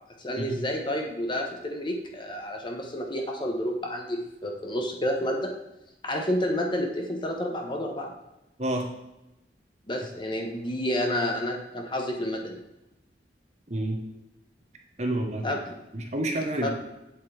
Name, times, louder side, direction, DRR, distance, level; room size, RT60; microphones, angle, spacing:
voice 1, 0.2-5.5 6.0-8.1 9.9-12.6 15.4-15.7 16.6-16.7, equal, 25° left, 2 dB, 1.1 m, -30 dB
voice 2, 15.0-15.4 15.9-16.7, right 1 dB, 40° right, 3 dB, 1.2 m, -28 dB
8.4 x 7.8 x 3.4 m, 0.93 s
head